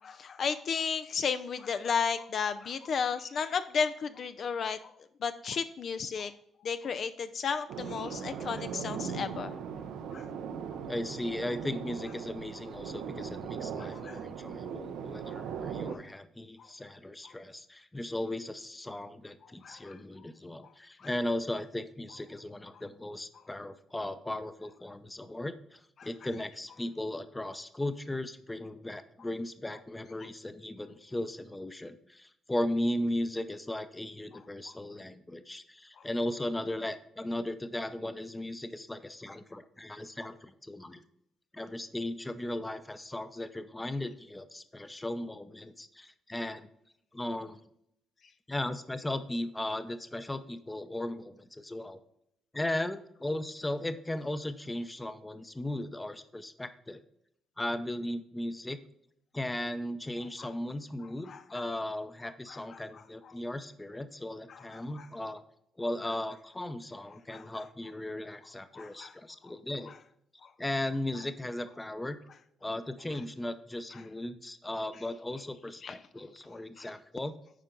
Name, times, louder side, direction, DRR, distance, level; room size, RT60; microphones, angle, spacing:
voice 1, 0.0-4.9 5.2-6.3 6.6-9.6 10.1-10.3 13.8-14.2 15.2-15.3 15.9-16.0 16.6-16.7 17.2-17.3 19.6-20.0 21.0-21.1 26.0-26.1 36.0-36.1 60.4-60.5 61.3-61.6 62.5-63.0 64.5-65.1 67.3-67.6 68.7-69.1 69.4-69.5 69.9-70.0 70.4-70.5 75.8-76.0 76.8-76.9, left 6 dB, 55° left, 11 dB, 0.4 m, -34 dB
sound 1, 7.7-15.9, right 7 dB, 85° right, 0.7 m, -39 dB
voice 2, 10.9-41.0 41.5-46.7 47.1-47.6 48.5-52.0 52.5-57.0 57.6-58.8 59.3-65.4 65.8-69.9 70.6-72.2 72.6-77.3, left 1 dB, 15° left, 11 dB, 0.6 m, -37 dB
9.8 x 4.4 x 3.8 m, 0.73 s
cardioid pair, 90°, 0 cm